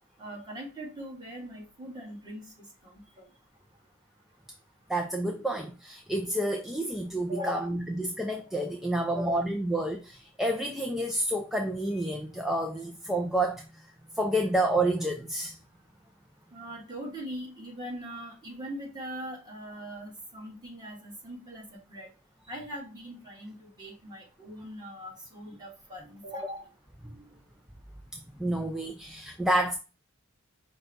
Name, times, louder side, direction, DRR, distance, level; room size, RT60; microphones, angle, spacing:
voice 1, 0.2-3.3 7.3-7.7 9.1-9.3 16.5-22.1 22.5-26.7, right 1 dB, 20° right, 1.7 m, -41 dB
voice 2, 4.9-13.8 14.1-15.6 27.0-27.2 28.1-29.7, right 1 dB, ahead, 0.3 m, -29 dB
5.2 x 2.3 x 3.9 m
head